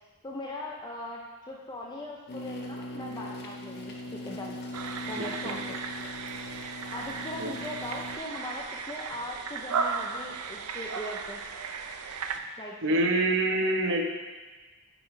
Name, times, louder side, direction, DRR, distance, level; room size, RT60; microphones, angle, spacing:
voice 1, 0.2-4.6 5.1-5.8 6.9-11.4 12.6-13.0, left 1 dB, 20° left, -2 dB, 0.6 m, -40 dB
sound 1, 2.3-8.2, left 1 dB, 50° left, 0.8 m, -40 dB
sound 2, 4.7-12.4, right 5 dB, 80° right, 0.5 m, -35 dB
voice 2, 12.8-14.0, right 2 dB, 60° right, 1 dB, 1.0 m, -25 dB
9.3 x 5.3 x 3.2 m, 1.2 s
head